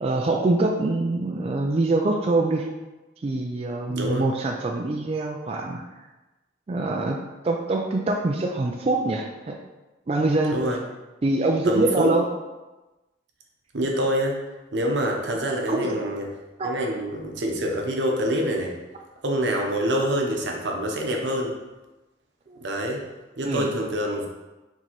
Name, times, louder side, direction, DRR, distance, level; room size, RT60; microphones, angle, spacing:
voice 1, 0.0-2.7 3.2-5.8 6.7-7.2 7.4-9.6 10.1-10.5 11.2-12.2 15.7-16.1 16.6-16.8 22.5-22.6 23.4-23.7, right 2 dB, 35° right, 1 dB, 0.3 m, -24 dB
voice 2, 11.7-12.1 13.7-14.4 14.7-16.3 16.6-18.7 19.2-21.5 22.6-23.0 23.4-24.3, right 1 dB, 85° right, 1 dB, 0.8 m, -25 dB
4.5 x 3.9 x 3.0 m, 1.1 s
head